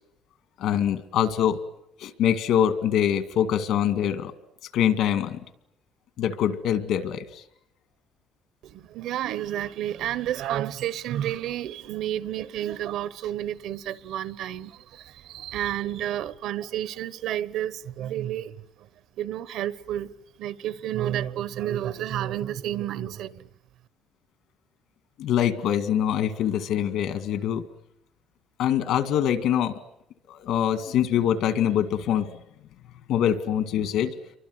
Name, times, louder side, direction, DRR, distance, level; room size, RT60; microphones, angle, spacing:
voice 1, 0.6-1.6 2.0-4.3 4.7-5.4 6.2-7.4 25.2-27.6 28.6-29.7 30.3-32.3 33.1-34.1, left 9 dB, 65° left, 2.1 m, -24 dB
voice 2, 8.6-18.9 19.2-20.1 20.4-23.5, right 11 dB, 65° right, 1.0 m, -31 dB
29.5 x 24.0 x 8.0 m
cardioid pair, 170°, 0 cm